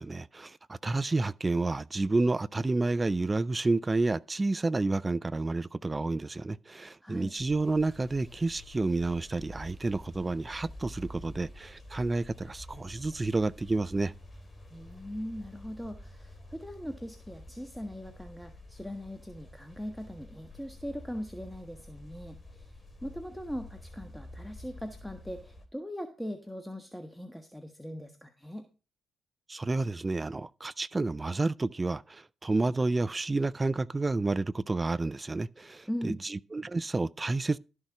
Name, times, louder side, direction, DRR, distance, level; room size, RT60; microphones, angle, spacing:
voice 1, 0.0-14.1 29.5-37.6, right 3 dB, 25° right, 0.4 m, -30 dB
voice 2, 7.0-7.3 14.7-22.7 23.0-28.7 35.9-36.2, equal, ahead, 1.4 m, -40 dB
sound 1, 7.4-25.7, left 1 dB, 20° left, 3.1 m, -49 dB
12.5 x 6.5 x 4.8 m
hypercardioid pair, 45°, 0 cm